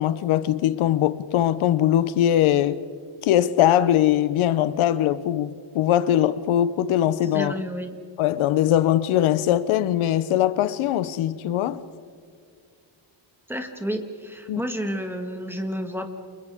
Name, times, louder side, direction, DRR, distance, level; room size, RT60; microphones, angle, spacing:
voice 1, 0.0-2.8 3.2-7.5 8.2-11.8 14.5-14.6, left 11 dB, 75° left, 0.9 m, -21 dB
voice 2, 7.3-8.0 13.5-16.1, equal, 5° right, 1.7 m, -30 dB
29.5 x 28.5 x 3.6 m
cardioid pair, 155°, 49 cm